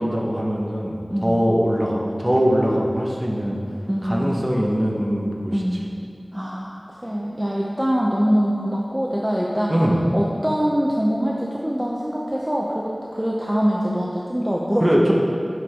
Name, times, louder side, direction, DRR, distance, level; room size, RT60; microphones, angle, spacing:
voice 1, 0.0-3.6 4.0-5.5 9.7-9.9 14.8-15.1, equal, 30° right, -3 dB, 1.5 m, -21 dB
voice 2, 1.1-1.4 3.9-4.5 5.5-5.9 6.3-9.8 10.1-14.9, equal, 15° right, -3 dB, 0.8 m, -24 dB
9.9 x 6.7 x 3.8 m, 2.4 s
wide cardioid pair, 45°, 0 cm